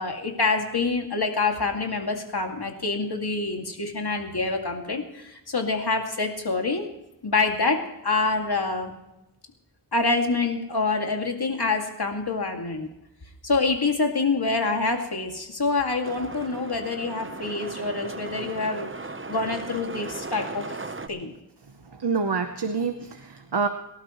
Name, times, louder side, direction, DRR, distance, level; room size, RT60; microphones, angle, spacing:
voice 1, 0.0-6.9 7.2-8.9 9.9-12.9 13.4-18.9 19.3-20.8 21.1-21.3, left 3 dB, 70° left, 3 dB, 2.3 m, -26 dB
sound 1, 16.0-21.1, right 3 dB, 30° right, 0.9 m, -37 dB
voice 2, 22.0-23.7, right 5 dB, 75° right, 6 dB, 1.1 m, -26 dB
23.5 x 12.0 x 3.1 m, 0.90 s
wide cardioid pair, 55°, 40 cm